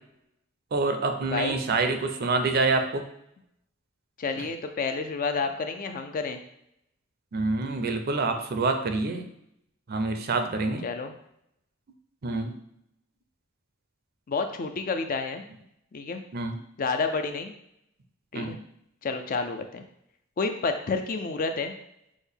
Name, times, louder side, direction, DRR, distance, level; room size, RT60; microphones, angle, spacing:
voice 1, 0.7-3.0 4.4-4.5 7.3-9.3 9.9-10.9 12.2-12.6 16.3-16.6 18.3-18.6, right 3 dB, 50° right, 6 dB, 0.5 m, -27 dB
voice 2, 4.2-6.4 10.8-11.1 14.3-15.4 15.9-16.2 16.8-17.5 18.3-18.6 19.0-19.8 20.4-21.7, left 4 dB, 45° left, 7 dB, 0.4 m, -29 dB
6.2 x 2.1 x 3.5 m, 0.76 s
head